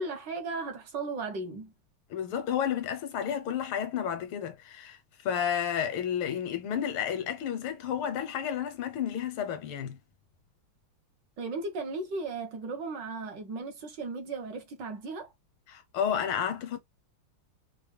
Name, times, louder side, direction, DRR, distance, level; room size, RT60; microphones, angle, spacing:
voice 1, 0.0-1.7 11.4-15.3, right 3 dB, 60° right, 1.5 m, -36 dB
voice 2, 2.1-5.0 5.2-10.0 15.7-16.8, left 8 dB, 80° left, 1.7 m, -31 dB
5.1 x 2.2 x 3.3 m
omnidirectional pair, 2.4 m